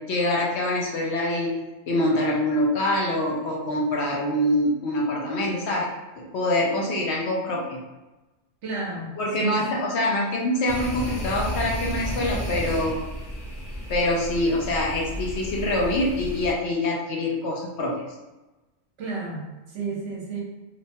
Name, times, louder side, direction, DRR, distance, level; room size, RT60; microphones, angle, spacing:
voice 1, 0.0-1.5 1.9-5.9 6.2-7.8 9.2-13.0 13.9-17.9, left 1 dB, 65° left, -2 dB, 0.8 m, -25 dB
voice 2, 8.6-9.7 19.0-20.4, right 4 dB, 70° right, -3 dB, 1.0 m, -32 dB
sound 1, 10.7-16.5, equal, 30° left, 0.5 m, -32 dB
2.9 x 2.1 x 2.6 m, 1.1 s
omnidirectional pair, 1.3 m